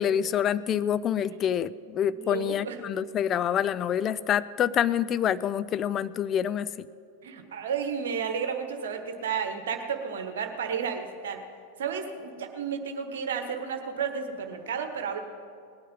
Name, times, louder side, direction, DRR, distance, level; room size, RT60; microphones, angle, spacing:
voice 1, 0.0-6.9, left 9 dB, 30° left, 15 dB, 0.4 m, -27 dB
voice 2, 2.1-2.8 7.2-11.4 11.8-15.2, right 6 dB, 60° right, 6 dB, 1.3 m, -32 dB
19.0 x 9.2 x 5.5 m, 2.4 s
figure-of-eight pair, 90°, 0 cm